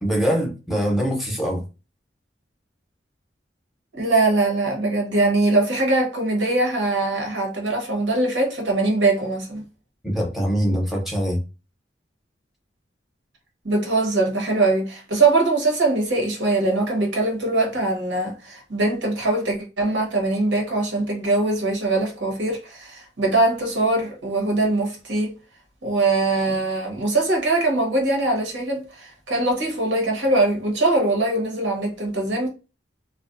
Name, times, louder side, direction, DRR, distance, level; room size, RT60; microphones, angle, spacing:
voice 1, 0.0-1.6 10.0-11.4, equal, ahead, 0.7 m, -23 dB
voice 2, 3.9-9.6 13.6-25.3 25.8-32.5, right 2 dB, 90° right, 1.1 m, -22 dB
2.4 x 2.2 x 2.5 m
head